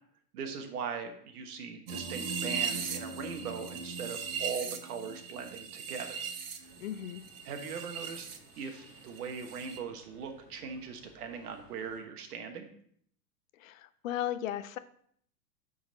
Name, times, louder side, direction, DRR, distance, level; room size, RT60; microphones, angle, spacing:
voice 1, 0.3-6.2 7.4-8.3 8.6-12.7, right 6 dB, 65° right, 5 dB, 1.3 m, -40 dB
Guitar, 1.9-5.9, left 3 dB, 35° left, 1.6 m, -51 dB
sound 1, 1.9-8.4 8.6-9.8, right 6 dB, 40° right, 0.4 m, -38 dB
sound 2, 6.6-12.0, equal, 5° left, 0.9 m, -60 dB
voice 2, 6.8-7.2 13.5-14.8, left 11 dB, 55° left, 14 dB, 0.5 m, -36 dB
7.9 x 4.0 x 3.9 m, 0.63 s
supercardioid pair, 175°, 48 cm